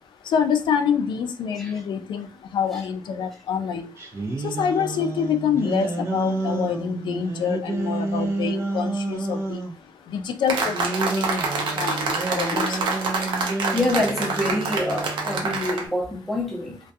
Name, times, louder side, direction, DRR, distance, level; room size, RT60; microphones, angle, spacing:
voice 1, 0.3-2.3 2.5-3.9 4.6-9.6 10.1-12.9, left 7 dB, 70° left, 0.3 m, -26 dB
sound 1, 4.0-9.8 10.6-15.6, right 3 dB, 35° right, 0.5 m, -30 dB
sound 2, 10.5-15.9, right 3 dB, 85° right, 0.6 m, -27 dB
voice 2, 13.7-16.8, left 1 dB, 5° left, 0.7 m, -26 dB
2.3 x 2.2 x 2.6 m
wide cardioid pair, 150°, 8 cm